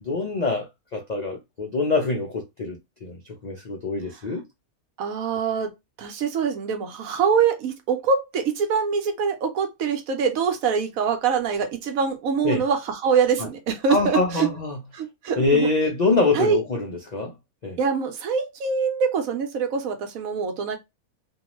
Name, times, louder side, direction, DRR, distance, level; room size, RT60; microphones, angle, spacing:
voice 1, 0.0-3.2 3.4-4.4 12.4-12.6 13.9-14.8 15.4-17.3 17.6-17.8, left 3 dB, 65° left, 0.4 m, -24 dB
voice 2, 5.0-5.7 6.0-14.5 14.9-15.7 16.3-16.6 17.8-20.8, right 6 dB, 75° right, 1.1 m, -24 dB
2.6 x 2.3 x 3.0 m
omnidirectional pair, 1.5 m